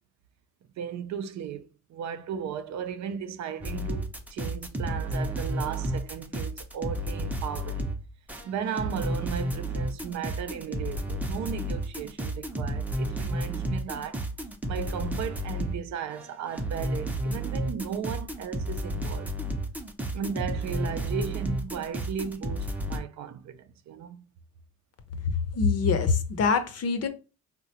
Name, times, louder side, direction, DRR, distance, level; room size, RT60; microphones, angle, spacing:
voice 1, 0.8-7.9 8.4-14.3 14.7-19.3 20.1-24.2, right 8 dB, 65° right, 0.5 m, -36 dB
sound 1, 3.6-15.8 16.1-23.0, right 1 dB, 5° right, 0.5 m, -32 dB
voice 2, 25.5-27.1, left 5 dB, 55° left, 0.7 m, -24 dB
3.7 x 2.2 x 2.7 m
cardioid pair, 90°, 30 cm